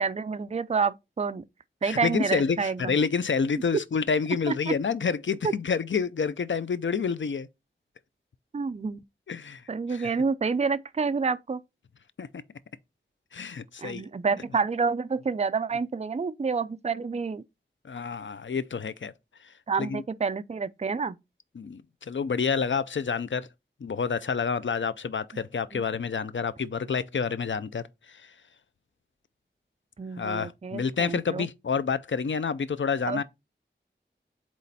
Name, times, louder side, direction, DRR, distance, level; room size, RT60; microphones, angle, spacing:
voice 1, 0.0-1.4 1.8-3.0 4.5-4.7 5.4-5.5 8.5-9.0 9.7-11.6 13.8-17.4 19.7-21.2 25.7-25.8 30.0-31.5 33.1-33.2, right 5 dB, 35° right, 0.4 m, -28 dB
voice 2, 1.8-7.5 9.3-9.6 9.9-10.1 12.2-12.3 13.3-14.0 17.8-19.1 19.8-20.0 21.6-21.8 22.1-23.5 23.8-27.8 28.1-28.2 30.2-33.2, left 5 dB, 75° left, 0.5 m, -28 dB
8.3 x 3.1 x 4.1 m
wide cardioid pair, 50°, 20 cm